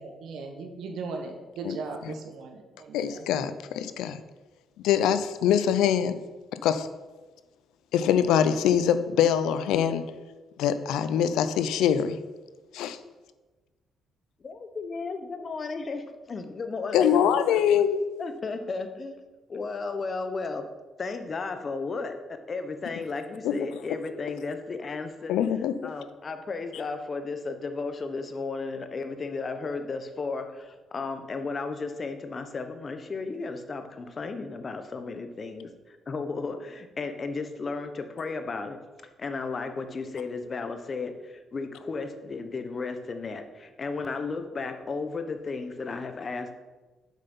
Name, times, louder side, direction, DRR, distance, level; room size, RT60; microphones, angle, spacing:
voice 1, 0.0-3.2, right 3 dB, 75° right, 1.3 m, -38 dB
voice 2, 2.9-4.2 4.8-6.2 6.5-6.9 7.9-10.1 10.6-12.2 12.7-13.0 16.9-18.0 23.4-23.6 25.3-25.9, left 9 dB, 90° left, 0.5 m, -24 dB
voice 3, 14.4-17.6 18.2-19.2 19.5-20.7 21.0-25.3 25.8-38.8 39.2-46.5, left 4 dB, 40° left, 1.0 m, -34 dB
7.3 x 5.8 x 5.5 m
cardioid pair, 90°, 0 cm